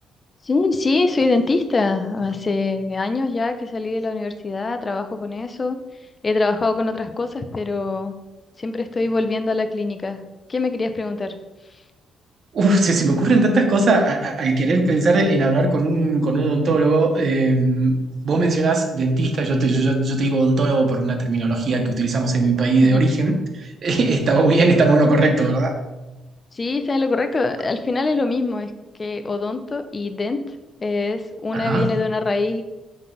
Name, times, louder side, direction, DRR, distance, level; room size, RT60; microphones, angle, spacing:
voice 1, 0.4-5.8 6.2-8.1 8.6-10.2 10.5-11.3 11.7-11.8 22.8-23.0 26.5-28.7 29.0-32.6, left 3 dB, 30° left, 8 dB, 0.4 m, -23 dB
voice 2, 12.5-17.9 18.2-25.7 31.5-31.9, right 2 dB, 55° right, 4 dB, 0.7 m, -19 dB
5.4 x 3.7 x 2.2 m, 1.1 s
cardioid pair, 90°, 0 cm